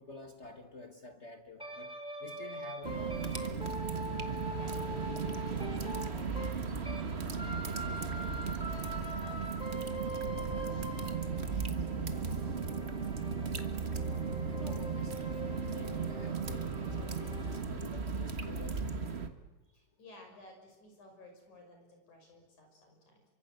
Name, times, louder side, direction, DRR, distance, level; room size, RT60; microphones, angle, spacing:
voice 1, 0.0-3.7 14.5-19.1, left 3 dB, 40° left, 6 dB, 0.9 m, -50 dB
sound 1, 1.6-7.1 7.3-17.6, right 1 dB, ahead, 2.6 m, -43 dB
sound 2, 2.8-19.3, right 5 dB, 35° right, 1.0 m, -36 dB
voice 2, 4.3-12.2 19.7-23.3, left 2 dB, 80° left, 3 dB, 7.1 m, -57 dB
27.5 x 24.5 x 8.0 m, 1.0 s
omnidirectional pair, 3.4 m